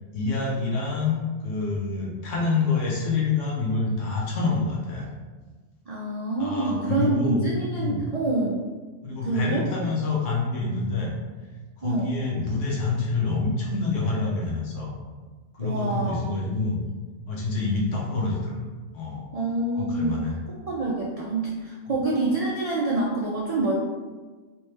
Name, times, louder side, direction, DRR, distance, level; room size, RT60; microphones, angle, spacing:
voice 1, 0.1-5.1 6.4-7.4 7.8-8.0 9.0-11.1 11.8-14.9 15.5-16.8 17.3-18.6 18.9-19.3 19.7-20.3, left 3 dB, 65° left, -3 dB, 1.2 m, -27 dB
voice 2, 5.9-8.6 9.1-9.7 11.8-12.1 15.6-16.3 19.3-20.2 20.5-23.7, right 2 dB, 65° right, -5 dB, 0.3 m, -26 dB
3.4 x 3.1 x 3.2 m, 1.3 s
omnidirectional pair, 1.4 m